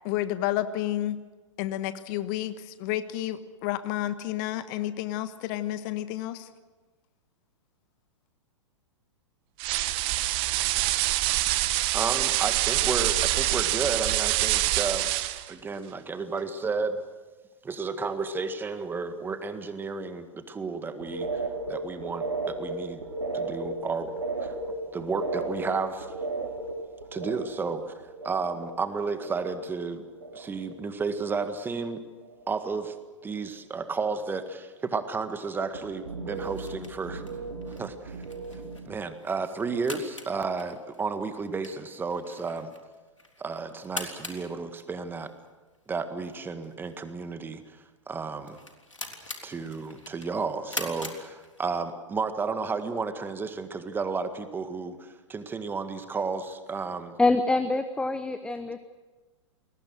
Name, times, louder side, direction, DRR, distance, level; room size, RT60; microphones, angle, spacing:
voice 1, 0.0-1.2 1.6-2.5 2.8-6.5, left 13 dB, 40° left, 12 dB, 1.3 m, -30 dB
sound 1, 9.6-15.5, right 17 dB, 35° right, 1.2 m, -25 dB
voice 2, 11.9-15.2 15.5-17.0 17.6-21.4 21.7-23.0 23.3-24.1 24.4-24.6 24.9-26.1 27.1-27.9 28.2-30.0 30.3-32.0 32.5-32.9 33.2-37.2 37.7-38.2 38.5-42.7 43.4-45.3 45.9-47.6 48.1-48.6 49.4-57.1, right 4 dB, 15° right, 9 dB, 1.8 m, -32 dB
sound 2, 20.8-29.8 30.0-30.7 31.0-31.7 32.0-32.5 35.7-38.9, right 3 dB, 70° right, 4.2 m, -36 dB
sound 3, 36.3-52.0, left 2 dB, 90° left, 3.5 m, -43 dB
voice 3, 57.2-58.9, left 3 dB, 5° left, 11 dB, 0.9 m, -25 dB
29.0 x 21.5 x 6.4 m, 1.3 s
figure-of-eight pair, 105°, 16 cm